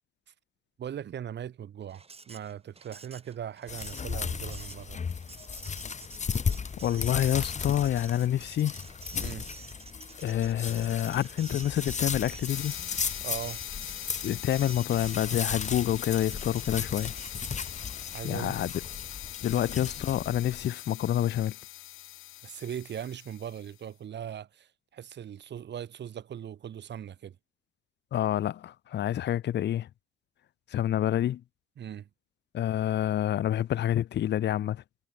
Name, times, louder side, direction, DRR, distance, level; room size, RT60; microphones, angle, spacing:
voice 1, 0.8-5.0 9.2-9.5 13.2-13.6 18.1-18.6 19.5-19.6 22.4-27.4 31.8-32.1, right 9 dB, 60° right, 4.7 m, -39 dB
Printer, 1.9-18.0, right 4 dB, 30° right, 5.8 m, -50 dB
sound 1, 3.7-20.7, left 6 dB, 35° left, 1.8 m, -36 dB
voice 2, 6.8-8.8 10.2-12.7 14.2-17.1 18.2-18.7 19.4-21.6 28.1-29.9 30.7-31.4 32.5-34.8, left 11 dB, 60° left, 0.8 m, -28 dB
sound 2, 12.5-23.7, left 15 dB, 85° left, 1.8 m, -42 dB
cardioid pair, 90°, 20 cm